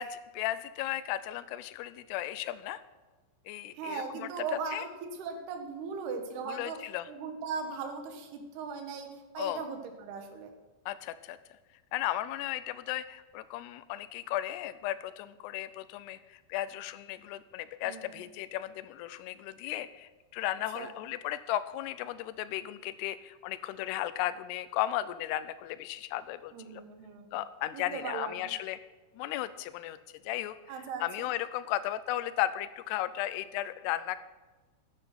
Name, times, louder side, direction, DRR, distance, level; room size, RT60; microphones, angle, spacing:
voice 1, 0.0-2.8 3.5-4.3 4.7-4.8 6.5-7.1 9.4-9.6 10.9-11.4 11.9-26.8 27.3-28.8 29.1-30.0 30.2-30.6 31.0-34.2, left 13 dB, 90° left, 14 dB, 2.7 m, -35 dB
voice 2, 3.7-6.8 7.1-10.5 17.8-18.3 20.7-21.0 26.5-27.4 27.7-28.5 30.7-31.3, right 5 dB, 80° right, 5 dB, 3.3 m, -38 dB
9.9 x 9.8 x 5.9 m, 1.2 s
omnidirectional pair, 4.7 m